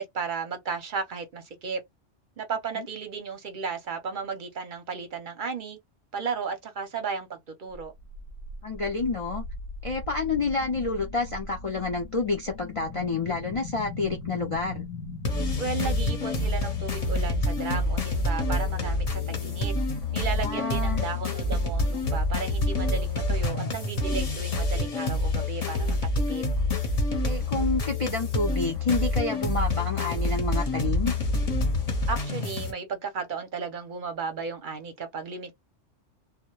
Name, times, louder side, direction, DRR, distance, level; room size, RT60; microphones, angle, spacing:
voice 1, 0.0-1.8 2.4-5.8 6.1-7.9 15.6-19.7 20.1-26.0 26.3-26.5 32.1-35.5, right 5 dB, 50° right, 0.7 m, -34 dB
sound 1, 7.7-22.0, left 2 dB, 80° left, 0.9 m, -40 dB
voice 2, 8.6-9.5 9.8-14.9 20.4-21.1 27.2-31.1, left 4 dB, 60° left, 0.3 m, -29 dB
sound 2, 15.3-32.7, left 2 dB, 35° left, 0.7 m, -27 dB
2.1 x 2.1 x 2.9 m
omnidirectional pair, 1.3 m